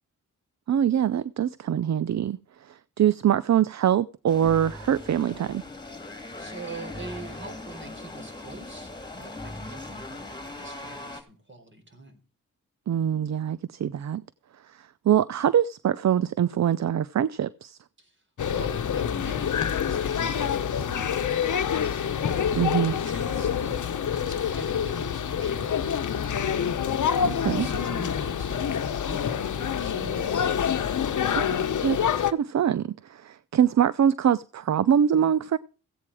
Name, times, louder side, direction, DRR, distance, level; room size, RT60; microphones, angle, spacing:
voice 1, 0.7-5.6 12.9-14.2 14.7-17.8 22.5-22.9 27.2-27.7 31.4-35.6, right 9 dB, 55° right, 0.6 m, -24 dB
sound 1, 4.3-11.2, left 2 dB, 15° left, 2.4 m, -40 dB
voice 2, 6.4-12.2 18.0-18.2 18.5-21.9 22.8-26.6 27.2-30.9, right 2 dB, 35° right, 4.4 m, -44 dB
sound 2, 18.4-32.3, left 8 dB, 65° left, 1.0 m, -27 dB
15.5 x 8.6 x 4.8 m
cardioid pair, 85°, 32 cm